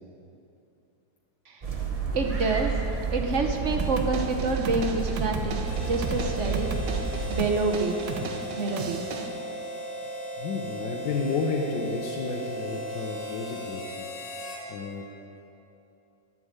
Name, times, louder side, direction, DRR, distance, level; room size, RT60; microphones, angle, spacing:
sound 1, 1.6-7.6, right 4 dB, 30° right, 0.8 m, -30 dB
voice 1, 2.1-2.8 3.1-6.7 7.3-8.0 8.6-9.0, right 3 dB, 50° right, 3 dB, 1.0 m, -27 dB
sound 2, 3.8-9.3, right 4 dB, 85° right, 1.6 m, -36 dB
Harmonica, 5.6-14.7, equal, 55° left, 2.6 m, -37 dB
voice 2, 10.4-14.1 14.7-15.0, left 4 dB, 85° left, -1 dB, 1.6 m, -31 dB
11.0 x 7.7 x 8.0 m, 2.7 s
omnidirectional pair, 1.9 m